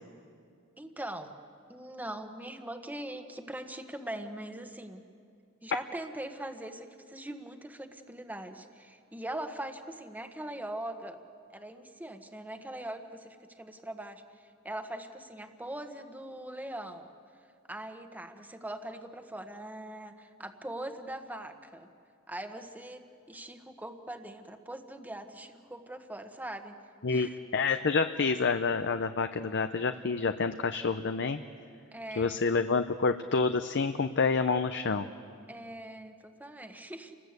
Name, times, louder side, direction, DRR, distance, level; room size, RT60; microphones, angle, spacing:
voice 1, 0.8-1.3 1.7-5.0 5.6-11.2 11.5-14.2 14.6-17.1 17.7-21.9 22.3-26.7 27.1-27.4 31.9-32.4 35.5-37.2, right 1 dB, 10° right, 6 dB, 1.3 m, -41 dB
voice 2, 27.0-31.4 32.2-35.1, left 4 dB, 55° left, 8 dB, 0.7 m, -28 dB
29.5 x 20.0 x 8.2 m, 2.3 s
head